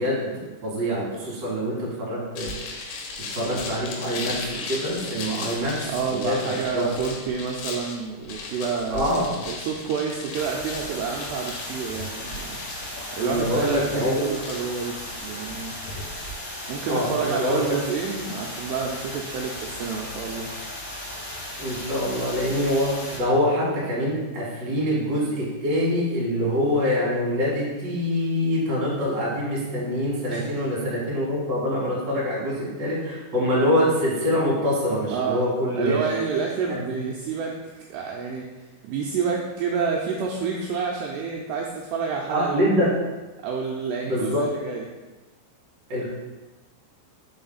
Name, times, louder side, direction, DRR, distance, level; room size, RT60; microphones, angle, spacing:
voice 1, 0.0-2.5 3.3-5.8 6.0-6.9 8.9-9.3 13.2-14.2 16.8-17.6 21.6-36.0 36.9-37.0 42.3-42.9 44.0-44.4 45.9-46.1, equal, 40° right, -7 dB, 1.7 m, -25 dB
sound 1, 2.4-16.3, left 3 dB, 85° left, 3.2 m, -37 dB
voice 2, 5.9-9.1 9.5-12.6 13.1-15.7 16.7-20.5 30.3-30.5 35.1-35.4 35.7-38.5 38.9-42.9 43.4-44.9, right 6 dB, 85° right, -1 dB, 2.5 m, -29 dB
sound 2, 10.3-23.2, left 1 dB, 45° left, 2.6 m, -36 dB
6.3 x 4.2 x 4.0 m, 1.2 s
omnidirectional pair, 5.3 m